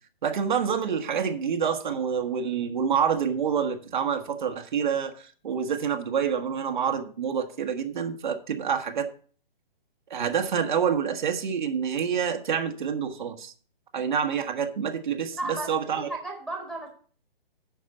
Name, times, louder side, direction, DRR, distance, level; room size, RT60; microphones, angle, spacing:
voice 1, 0.2-9.1 10.1-13.5 13.9-16.1, right 7 dB, 55° right, 4 dB, 1.3 m, -27 dB
voice 2, 15.3-16.9, right 2 dB, ahead, -2 dB, 1.7 m, -34 dB
9.4 x 5.6 x 6.6 m, 0.43 s
hypercardioid pair, 150°, 29 cm